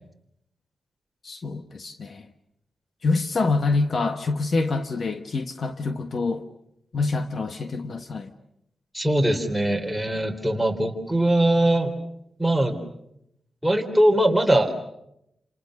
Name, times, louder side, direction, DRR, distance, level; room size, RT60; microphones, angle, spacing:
voice 1, 1.2-2.3 3.0-6.4 6.9-8.3, left 3 dB, 50° left, 1.4 m, -26 dB
voice 2, 8.9-11.9 12.4-12.8 13.6-14.7, right 1 dB, ahead, 3.8 m, -21 dB
29.5 x 28.0 x 6.5 m
wide cardioid pair, 130°, 0 cm